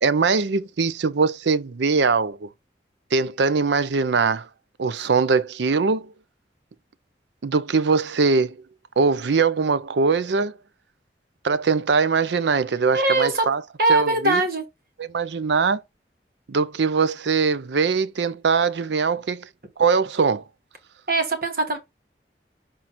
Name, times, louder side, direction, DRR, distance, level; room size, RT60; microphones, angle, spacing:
voice 1, 0.0-2.5 3.1-4.5 4.8-6.1 7.4-8.6 9.0-10.5 11.4-13.6 13.9-14.4 15.0-15.8 16.5-19.5 19.8-20.4, right 5 dB, 85° right, 0.5 m, -21 dB
voice 2, 12.9-13.4 13.8-14.6 21.1-21.8, right 2 dB, 55° right, 1.5 m, -21 dB
5.9 x 3.7 x 4.2 m
head